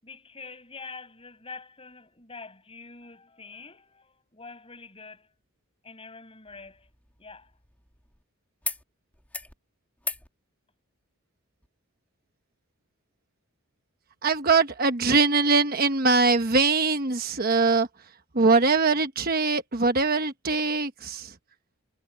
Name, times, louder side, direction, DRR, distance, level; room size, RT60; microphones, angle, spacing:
voice 1, 0.0-5.3 5.8-6.9 7.2-7.5, left 4 dB, 25° left, 6.7 m, -45 dB
sound 1, 6.4-8.2 8.6-8.8 9.1-9.5 10.0-10.3 11.6-11.7, left 2 dB, 5° left, 2.3 m, -38 dB
voice 2, 14.2-17.9 18.3-21.3, right 4 dB, 45° right, 1.1 m, -22 dB
head